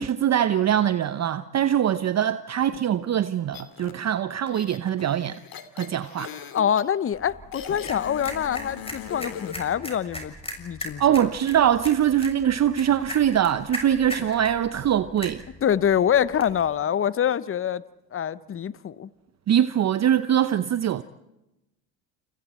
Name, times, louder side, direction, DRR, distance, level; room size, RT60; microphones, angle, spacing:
voice 1, 0.0-5.4 5.8-6.3 11.0-15.4 19.5-21.0, right 10 dB, 35° right, 0.8 m, -23 dB
sound 1, 3.5-3.9 4.5-6.8 7.5-9.7, left 8 dB, 45° left, 2.7 m, -39 dB
voice 2, 6.5-11.3 15.6-17.8 18.1-19.1, left 9 dB, 25° left, 0.9 m, -25 dB
sound 2, 7.1-16.6, left 1 dB, 10° left, 6.7 m, -39 dB
29.5 x 29.0 x 4.4 m
hypercardioid pair, 70°, 48 cm